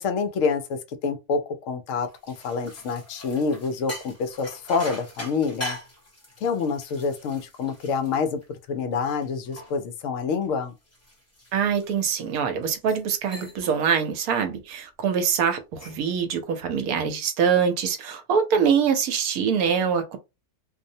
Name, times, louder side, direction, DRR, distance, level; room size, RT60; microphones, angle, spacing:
voice 1, 0.0-5.8 6.4-8.4 8.7-10.7, left 5 dB, 65° left, 0.8 m, -27 dB
sound 1, 2.0-8.8 9.2-12.2 12.7-13.1 13.3-13.8 14.1-14.4 15.5-16.1, equal, 15° left, 0.6 m, -42 dB
voice 2, 11.5-20.2, right 7 dB, 75° right, 1.1 m, -24 dB
2.6 x 2.0 x 2.7 m
omnidirectional pair, 1.6 m